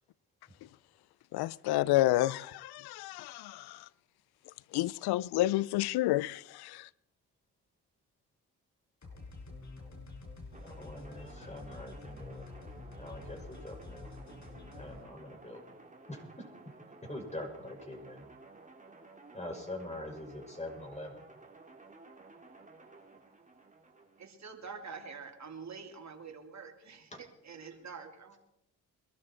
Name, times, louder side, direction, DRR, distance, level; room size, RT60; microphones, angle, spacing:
voice 1, 1.3-3.9 4.7-6.9, left 16 dB, 80° left, 0.6 m, -30 dB
sound 1, 9.0-15.0, left 3 dB, 50° left, 5.0 m, -48 dB
voice 2, 10.5-12.5 13.0-14.1 14.7-15.8 16.1-18.3 19.3-21.2 27.1-27.2, left 1 dB, 20° left, 6.2 m, -44 dB
sound 2, 10.5-24.2, right 3 dB, 20° right, 3.0 m, -55 dB
voice 3, 24.2-27.1 27.4-28.4, right 5 dB, 45° right, 3.0 m, -46 dB
22.5 x 13.0 x 4.5 m
supercardioid pair, 50°, 38 cm